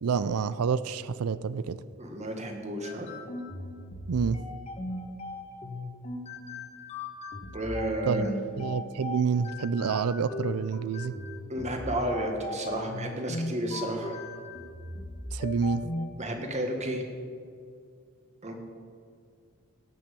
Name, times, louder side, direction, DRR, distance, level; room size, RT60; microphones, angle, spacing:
voice 1, 0.0-1.8 4.1-4.4 8.0-8.3 8.6-11.1 15.3-15.8, right 5 dB, 80° right, 15 dB, 0.5 m, -28 dB
voice 2, 2.0-3.1 7.5-8.3 11.5-14.2 16.2-17.0 18.4-18.6, right 1 dB, 30° right, 3 dB, 1.8 m, -32 dB
sound 1, 2.8-16.1, left 2 dB, 30° left, 1.6 m, -38 dB
17.0 x 6.2 x 8.3 m, 2.2 s
head